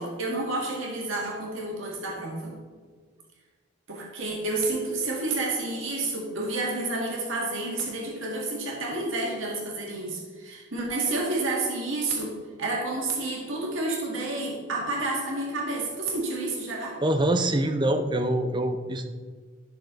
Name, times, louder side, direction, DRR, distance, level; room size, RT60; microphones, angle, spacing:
voice 1, 0.0-2.5 3.9-12.3 12.6-17.0, right 2 dB, 75° right, -3 dB, 2.0 m, -30 dB
voice 2, 17.0-19.1, right 1 dB, 20° right, 7 dB, 0.6 m, -24 dB
12.0 x 6.4 x 3.9 m, 1.6 s
head